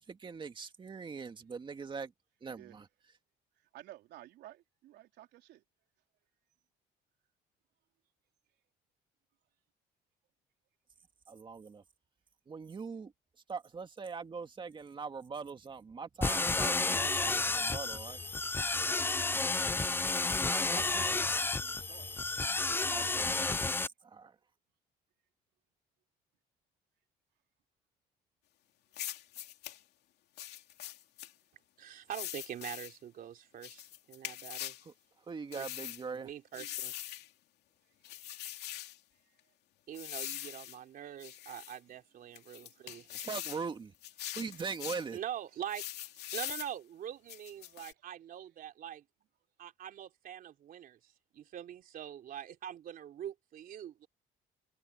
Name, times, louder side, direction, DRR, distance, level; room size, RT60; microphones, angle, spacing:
voice 1, 0.0-2.1 2.4-2.9 11.3-11.8 12.5-13.1 13.5-18.2 20.5-21.2 22.9-23.5 24.0-24.4 34.8-34.9 35.3-36.3 43.1-43.9 44.4-45.2, right 5 dB, 30° right, 2.1 m, -41 dB
voice 2, 3.6-5.6 20.5-22.2 37.9-38.6 39.3-39.4 47.6-47.8, right 14 dB, 80° right, 3.9 m, -55 dB
sound 1, 16.2-23.9, left 3 dB, 15° left, 0.5 m, -31 dB
sound 2, 28.9-29.8 30.4-31.3 32.1-32.9 33.6-34.8 35.5-36.0 36.5-37.3 38.0-39.0 39.9-40.8 41.2-41.8 42.3-43.6 44.0-45.1 45.7-46.7 47.3-47.9, left 13 dB, 75° left, 2.9 m, -42 dB
voice 3, 31.8-34.7 35.5-35.7 36.1-36.9 39.9-43.1 45.1-45.9 46.3-49.0 49.6-54.1, right 10 dB, 60° right, 3.5 m, -44 dB
cardioid pair, 110°, 17 cm